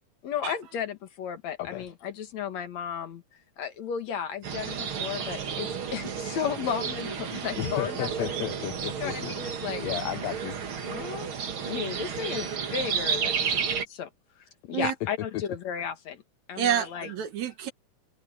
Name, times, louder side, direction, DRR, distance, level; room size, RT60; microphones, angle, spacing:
voice 1, 0.2-3.2 3.6-8.1 9.0-9.8 10.8-11.3 11.6-14.1 14.6-16.2 16.5-17.1, left 8 dB, 60° left, 2.7 m, -34 dB
sound 1, 4.4-13.8, right 7 dB, 45° right, 2.2 m, -32 dB
voice 2, 7.6-9.3 9.8-10.6 15.0-15.4, left 14 dB, 80° left, 1.5 m, -33 dB
voice 3, 16.6-17.7, right 10 dB, 65° right, 2.5 m, -28 dB
open air
omnidirectional pair, 3.8 m